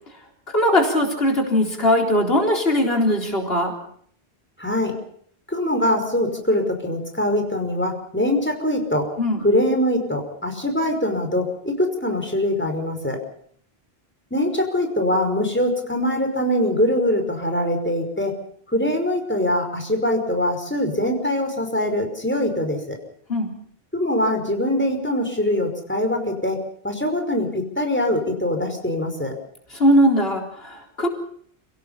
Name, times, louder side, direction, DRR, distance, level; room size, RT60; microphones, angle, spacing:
voice 1, 0.5-3.7 9.2-9.4 23.3-23.5 29.7-31.1, equal, 70° left, 2 dB, 4.3 m, -20 dB
voice 2, 4.6-5.0 5.5-9.1 9.4-13.2 14.3-18.4 18.7-22.8 23.9-26.6 26.8-29.3, left 1 dB, 10° left, 4 dB, 5.3 m, -23 dB
29.5 x 18.0 x 5.7 m, 0.62 s
omnidirectional pair, 1.0 m